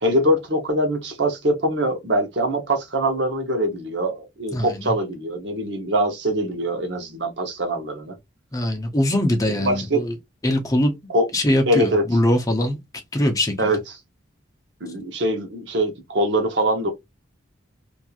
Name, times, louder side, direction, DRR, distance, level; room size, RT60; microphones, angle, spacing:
voice 1, 0.0-8.2 9.6-10.0 11.1-11.2 11.7-12.0 13.6-13.8 14.8-16.9, right 1 dB, 60° right, 0.9 m, -23 dB
voice 2, 4.5-4.9 8.5-10.1 10.4-10.9 11.3-12.8 13.1-13.7, left 1 dB, 15° left, 0.6 m, -22 dB
3.0 x 2.6 x 2.3 m
head